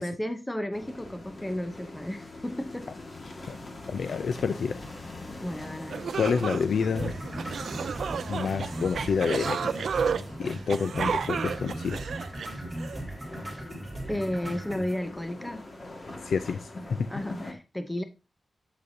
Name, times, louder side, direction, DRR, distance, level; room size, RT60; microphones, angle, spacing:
voice 1, 0.0-2.9 5.4-6.1 14.1-15.7 17.1-18.0, left 1 dB, 10° left, 0.6 m, -33 dB
sound 1, 0.7-17.5, left 2 dB, 40° left, 1.8 m, -43 dB
voice 2, 3.3-3.6 3.9-4.8 6.2-7.2 8.3-9.7 10.4-12.0 16.2-17.0, left 6 dB, 90° left, 0.4 m, -28 dB
sound 2, 5.5-5.6 5.9-13.0, right 6 dB, 90° right, 0.4 m, -32 dB
sound 3, 7.0-15.0, right 1 dB, 15° right, 4.3 m, -38 dB
8.2 x 7.6 x 2.7 m
wide cardioid pair, 110°, 0 cm